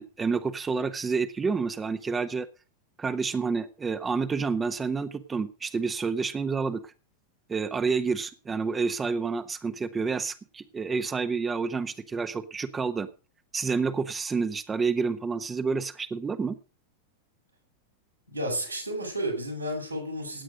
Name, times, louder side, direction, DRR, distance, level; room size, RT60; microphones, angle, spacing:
voice 1, 0.0-2.5 3.0-6.9 7.5-13.1 13.5-16.6, right 5 dB, 15° right, 10 dB, 0.9 m, -29 dB
voice 2, 18.3-20.4, right 1 dB, 90° right, 1 dB, 7.2 m, -32 dB
17.0 x 8.9 x 5.1 m, 0.35 s
figure-of-eight pair, 90°, 0 cm